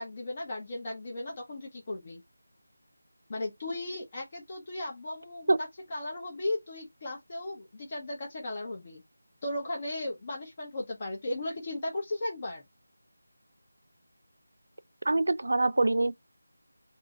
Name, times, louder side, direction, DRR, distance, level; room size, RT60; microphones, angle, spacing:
voice 1, 0.0-2.2 3.3-9.0 9.4-12.6, left 2 dB, 25° left, 0.8 m, -36 dB
voice 2, 15.1-16.1, right 2 dB, 60° right, 0.3 m, -24 dB
2.6 x 2.6 x 4.0 m
figure-of-eight pair, 175°, 0 cm